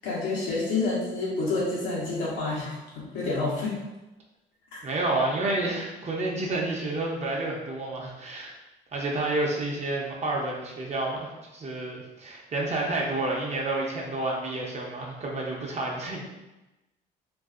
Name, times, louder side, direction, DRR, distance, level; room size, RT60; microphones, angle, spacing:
voice 1, 0.0-3.8 4.7-4.8, left 3 dB, 85° left, -6 dB, 1.0 m, -28 dB
voice 2, 4.8-8.5 8.9-16.2, right 2 dB, 35° right, -2 dB, 0.7 m, -29 dB
2.6 x 2.5 x 2.4 m, 1.0 s
cardioid pair, 90°, 18 cm